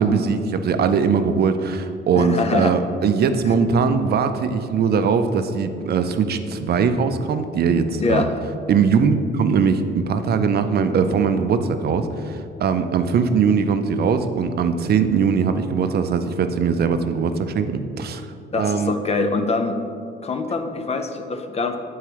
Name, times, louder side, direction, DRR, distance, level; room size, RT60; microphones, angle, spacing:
voice 1, 0.0-8.3 8.7-18.3 18.6-18.9, right 6 dB, 55° right, 9 dB, 0.5 m, -20 dB
voice 2, 2.1-2.7 8.0-8.3 18.5-19.8 20.2-21.8, left 3 dB, 30° left, 7 dB, 0.5 m, -23 dB
8.2 x 4.6 x 3.0 m, 2.5 s
cardioid pair, 90°, 20 cm